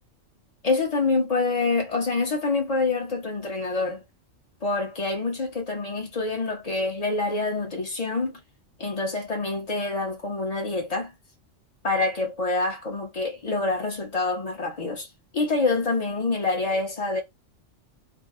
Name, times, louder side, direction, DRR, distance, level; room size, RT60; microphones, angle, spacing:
voice 1, 0.6-4.0 4.6-8.4 8.8-11.1 11.8-15.1 15.3-17.2, left 3 dB, 35° left, 0.9 m, -26 dB
2.8 x 2.2 x 3.5 m
omnidirectional pair, 1.3 m